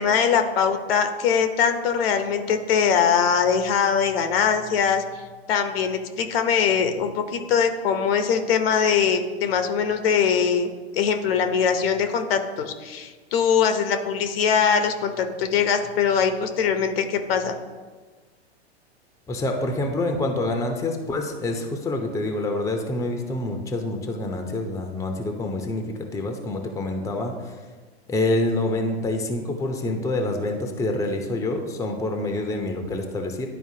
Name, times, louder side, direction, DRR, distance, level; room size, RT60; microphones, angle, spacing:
voice 1, 0.0-5.2 5.5-10.7 10.9-17.6, left 7 dB, 60° left, 7 dB, 0.9 m, -22 dB
voice 2, 19.3-27.5 28.1-33.5, left 2 dB, 10° left, 4 dB, 0.7 m, -27 dB
11.0 x 4.3 x 2.8 m, 1.4 s
hypercardioid pair, 105°, 33 cm